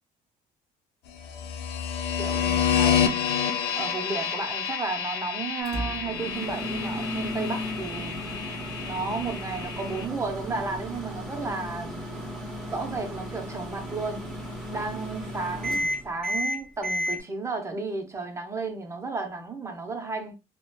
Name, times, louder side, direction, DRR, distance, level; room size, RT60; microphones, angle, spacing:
sound 1, 1.2-10.0, left 8 dB, 70° left, 0.4 m, -29 dB
voice 1, 2.2-3.4 3.8-8.3 8.8-12.0 12.6-14.3 14.7-20.3, right 4 dB, 15° right, 0.6 m, -33 dB
Microwave oven, 5.6-17.2, equal, ahead, 1.4 m, -34 dB
2.8 x 2.1 x 2.2 m
cardioid pair, 110°, 17 cm